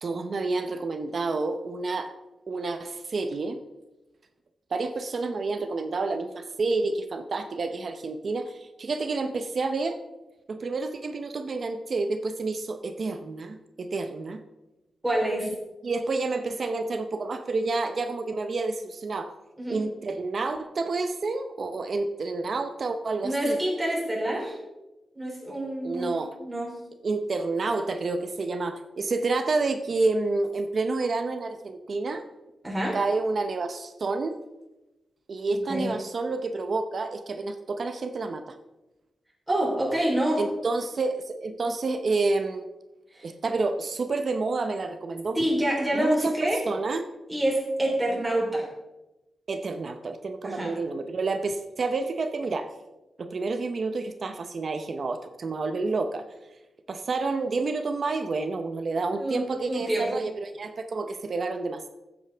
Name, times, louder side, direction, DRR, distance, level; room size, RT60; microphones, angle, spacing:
voice 1, 0.0-2.1 2.5-3.6 4.7-10.0 10.5-14.4 15.4-15.6 15.8-19.3 19.7-23.6 25.8-26.4 27.0-32.2 32.9-34.4 35.3-38.6 40.4-42.6 43.2-45.4 45.9-47.0 49.5-52.7 53.2-56.3 56.9-61.9, right 3 dB, 50° right, 8 dB, 0.7 m, -29 dB
voice 2, 15.0-15.5 19.6-19.8 23.2-24.6 25.2-26.7 32.6-33.0 35.7-35.9 39.5-40.4 43.1-43.2 45.3-46.6 47.3-48.7 50.4-50.7 59.2-60.2, right 1 dB, 10° right, -3 dB, 3.6 m, -27 dB
14.5 x 7.9 x 3.4 m, 1.0 s
wide cardioid pair, 145°, 0 cm